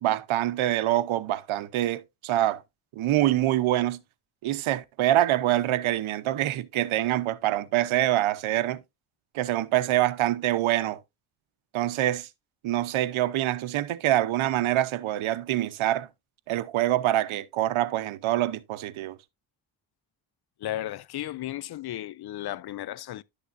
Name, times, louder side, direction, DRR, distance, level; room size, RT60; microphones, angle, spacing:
voice 1, 0.0-2.6 3.0-4.0 4.4-8.8 9.3-11.0 11.7-12.3 12.6-16.1 16.5-19.2, right 14 dB, 80° right, 0.9 m, -25 dB
voice 2, 20.6-23.2, left 13 dB, 55° left, 0.5 m, -34 dB
11.5 x 6.8 x 2.6 m
cardioid pair, 95°, 48 cm